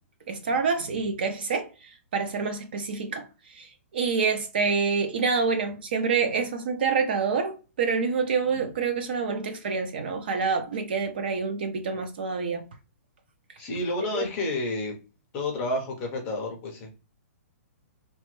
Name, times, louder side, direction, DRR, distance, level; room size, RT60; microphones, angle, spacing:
voice 1, 0.3-12.6 14.1-14.2, right 5 dB, 40° right, 0.4 m, -27 dB
voice 2, 13.6-14.9 15.3-16.9, left 2 dB, 15° left, 0.5 m, -30 dB
3.0 x 2.1 x 2.9 m
hypercardioid pair, 180°, 8 cm